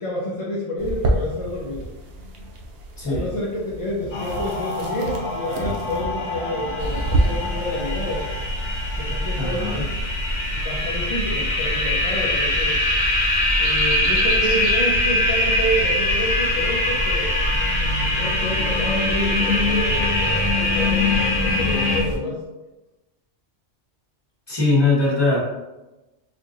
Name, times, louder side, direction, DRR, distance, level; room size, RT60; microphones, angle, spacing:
voice 1, 0.0-1.9 3.1-8.2 9.0-9.9 10.5-12.8 13.6-17.4 18.1-22.4, equal, 45° left, -5 dB, 0.4 m, -29 dB
sound 1, 0.8-7.2, right 2 dB, 60° right, 0.8 m, -29 dB
voice 2, 3.0-3.3 9.3-9.8 24.5-25.4, left 3 dB, 20° left, -8 dB, 1.3 m, -21 dB
sound 2, 4.1-22.0, left 2 dB, 90° left, 1.1 m, -23 dB
sound 3, 6.8-22.2, equal, 90° right, 1.3 m, -29 dB
4.4 x 2.6 x 2.6 m, 1.0 s
omnidirectional pair, 1.2 m